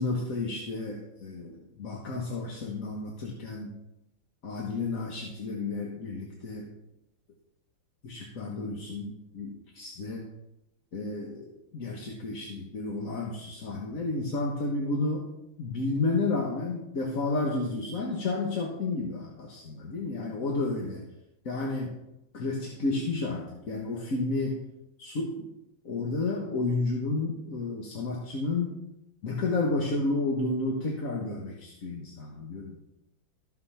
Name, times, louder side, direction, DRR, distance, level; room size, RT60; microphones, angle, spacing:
voice 1, 0.0-3.8 4.4-6.7 8.0-10.3 10.9-15.3 15.6-21.0 21.4-22.0 22.3-24.6 25.0-25.5 25.8-28.7 29.2-32.8, left 3 dB, 45° left, 0 dB, 1.5 m, -31 dB
14.0 x 6.6 x 5.7 m, 0.87 s
omnidirectional pair, 2.4 m